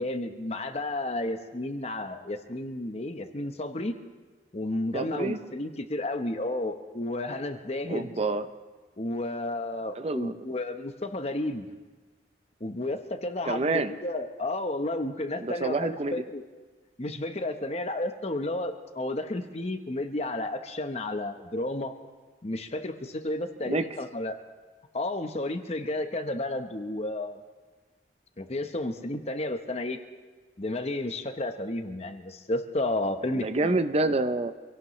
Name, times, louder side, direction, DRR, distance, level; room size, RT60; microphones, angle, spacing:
voice 1, 0.0-3.9 4.5-8.1 9.0-11.6 12.6-16.4 17.0-21.9 22.4-24.4 24.9-27.4 28.4-30.0 30.6-33.8, left 1 dB, 35° left, 7 dB, 1.0 m, -32 dB
voice 2, 4.9-5.4 7.9-8.5 10.0-10.4 13.5-13.9 15.4-16.2 23.6-23.8 33.3-34.5, right 2 dB, 35° right, 10 dB, 0.5 m, -27 dB
26.0 x 17.5 x 3.2 m, 1.3 s
head